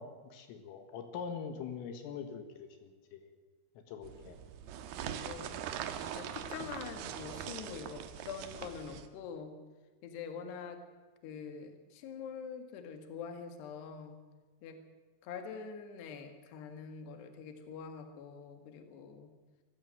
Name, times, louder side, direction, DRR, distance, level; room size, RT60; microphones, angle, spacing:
voice 1, 0.0-3.3 3.9-4.4, left 6 dB, 80° left, 7 dB, 4.2 m, -43 dB
sound 1, 4.0-9.1, right 9 dB, 75° right, 2.5 m, -42 dB
voice 2, 5.2-5.7 6.1-9.6 10.0-10.8 11.2-14.2 14.6-14.8 15.2-19.3, left 6 dB, 60° left, 6 dB, 3.6 m, -45 dB
23.5 x 14.5 x 7.8 m, 1.3 s
omnidirectional pair, 5.9 m